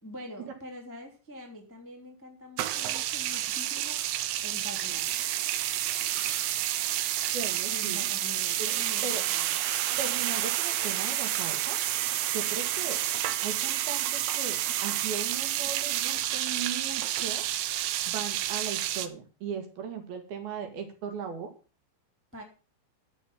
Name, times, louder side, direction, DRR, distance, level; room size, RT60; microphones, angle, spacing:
voice 1, 0.0-4.0 4.4-5.3 7.7-9.6 22.3-22.4, equal, 5° left, 1 dB, 1.4 m, -45 dB
sound 1, 2.6-19.1, right 13 dB, 85° right, 3.2 m, -29 dB
voice 2, 7.3-8.1 8.6-9.2 10.0-11.8 12.3-13.0 13.4-17.5 18.1-21.5, right 6 dB, 60° right, 6 dB, 3.5 m, -38 dB
11.0 x 7.3 x 7.1 m, 0.35 s
omnidirectional pair, 5.2 m